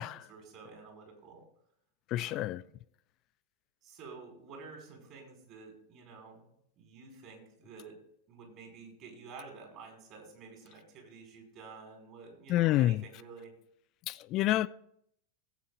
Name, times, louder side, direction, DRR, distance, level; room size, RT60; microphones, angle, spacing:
voice 1, 0.3-1.4 2.1-2.7 3.8-6.5 6.8-8.0 8.3-13.5, right 4 dB, 40° right, 5.0 m, -50 dB
voice 2, 2.1-2.6 12.5-13.0 14.1-14.7, left 15 dB, 35° left, 0.3 m, -28 dB
14.5 x 8.4 x 3.9 m
figure-of-eight pair, 90°, 0 cm